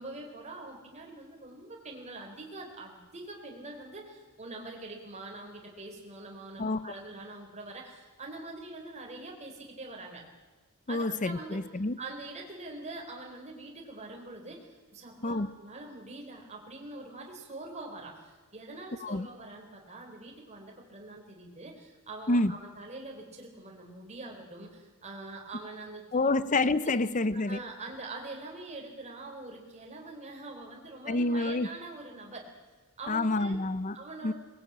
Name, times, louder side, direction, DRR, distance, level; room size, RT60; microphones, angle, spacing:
voice 1, 0.0-10.2 10.9-11.7 12.0-26.6 26.8-26.9 27.3-32.5 33.0-33.6 33.9-34.3, right 2 dB, 30° right, 0 dB, 4.1 m, -44 dB
voice 2, 6.6-6.9 10.9-11.9 15.2-15.5 19.0-19.3 22.3-22.5 26.1-27.6 31.1-31.7 33.1-34.0 34.2-34.3, left 2 dB, 35° left, 15 dB, 0.8 m, -28 dB
22.0 x 20.0 x 8.8 m, 1.3 s
head